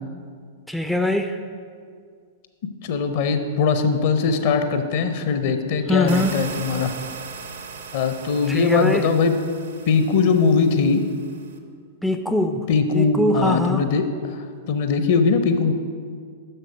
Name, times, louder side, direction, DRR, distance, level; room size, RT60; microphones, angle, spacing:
voice 1, 0.7-1.3 5.9-6.4 8.5-9.1 12.0-12.7 12.9-13.9, left 1 dB, ahead, 6 dB, 0.3 m, -22 dB
voice 2, 2.8-6.9 7.9-9.3 9.9-11.0 12.7-14.0 14.7-15.7, left 5 dB, 50° left, 8 dB, 0.6 m, -20 dB
sound 1, 6.1-11.6, right 5 dB, 65° right, 0.6 m, -38 dB
6.7 x 6.3 x 5.0 m, 2.1 s
figure-of-eight pair, 100°, 0 cm